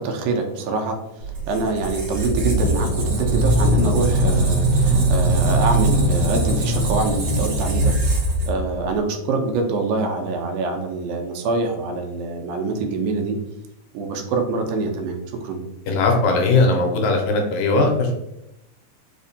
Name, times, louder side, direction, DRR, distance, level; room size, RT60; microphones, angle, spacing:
voice 1, 0.0-8.0 8.3-13.4 13.9-15.6, right 3 dB, 85° right, 4 dB, 2.1 m, -25 dB
Squeak, 1.2-9.0, right 1 dB, 65° right, 2.0 m, -20 dB
voice 2, 15.9-18.1, left 3 dB, 80° left, 2 dB, 2.0 m, -19 dB
5.0 x 2.1 x 2.6 m, 0.86 s
omnidirectional pair, 3.5 m